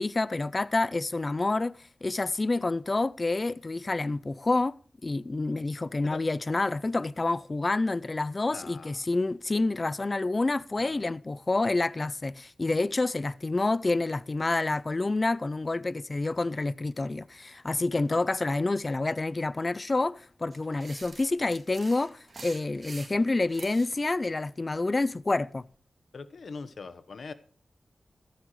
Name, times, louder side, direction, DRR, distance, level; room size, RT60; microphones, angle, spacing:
voice 1, 0.0-25.7, left 2 dB, 35° left, 0.5 m, -28 dB
voice 2, 8.5-8.9 10.8-11.1 18.1-18.2 26.1-27.3, left 4 dB, 70° left, 1.2 m, -42 dB
sound 1, 20.5-24.0, right 3 dB, 50° right, 3.5 m, -46 dB
15.0 x 13.0 x 3.2 m
wide cardioid pair, 85°, 0 cm